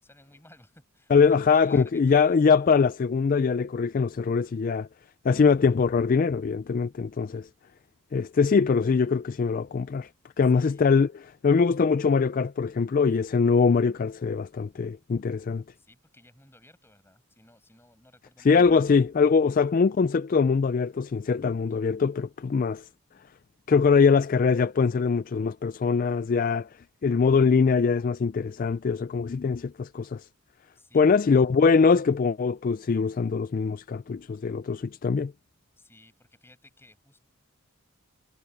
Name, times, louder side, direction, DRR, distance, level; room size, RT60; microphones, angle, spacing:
voice 1, 0.0-2.5 10.5-10.9 15.7-18.7 30.7-31.4 35.8-37.2, left 1 dB, 10° left, 6.7 m, -56 dB
voice 2, 1.1-4.9 5.2-7.5 8.1-10.1 10.4-15.6 18.5-22.9 23.7-26.7 27.0-30.3 30.9-35.3, left 5 dB, 40° left, 0.3 m, -22 dB
head